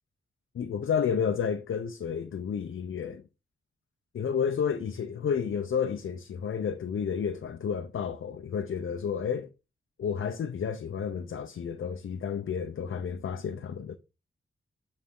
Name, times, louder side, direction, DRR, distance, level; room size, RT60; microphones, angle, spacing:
voice 1, 0.5-3.2 4.1-9.5 10.0-14.0, left 7 dB, 80° left, 0.6 m, -31 dB
8.8 x 4.1 x 3.7 m
wide cardioid pair, 165°, 21 cm